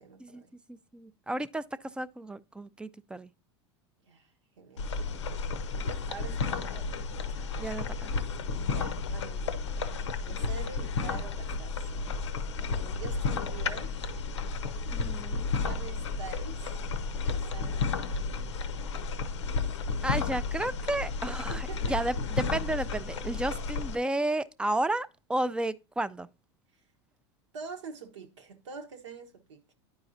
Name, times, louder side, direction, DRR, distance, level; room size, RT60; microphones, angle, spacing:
voice 1, 0.0-0.5 4.0-7.1 8.5-12.2 12.6-13.9 15.5-16.7 17.3-18.3 21.5-22.0 26.7-26.9 27.5-29.7, right 5 dB, 85° right, 1.1 m, -46 dB
voice 2, 0.7-1.6 1.9-3.3 7.6-8.1 14.9-15.5 20.0-26.3, right 1 dB, 5° right, 0.3 m, -32 dB
sound 1, 4.8-24.0, left 4 dB, 90° left, 0.6 m, -32 dB
10.0 x 4.7 x 2.6 m
hypercardioid pair, 100°, 15 cm